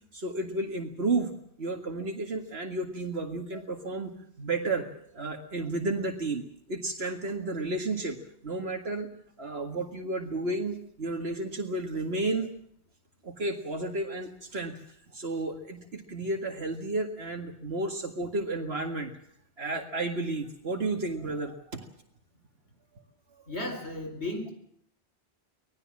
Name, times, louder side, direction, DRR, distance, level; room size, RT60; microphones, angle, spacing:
voice 1, 0.1-1.3 1.6-6.4 6.7-8.2 8.4-9.1 9.4-12.5 13.2-19.1 19.6-21.9, right 2 dB, 70° right, 3 dB, 2.1 m, -32 dB
voice 2, 23.5-24.5, left 1 dB, 80° left, 6 dB, 4.7 m, -34 dB
25.0 x 18.5 x 7.5 m, 0.67 s
omnidirectional pair, 1.1 m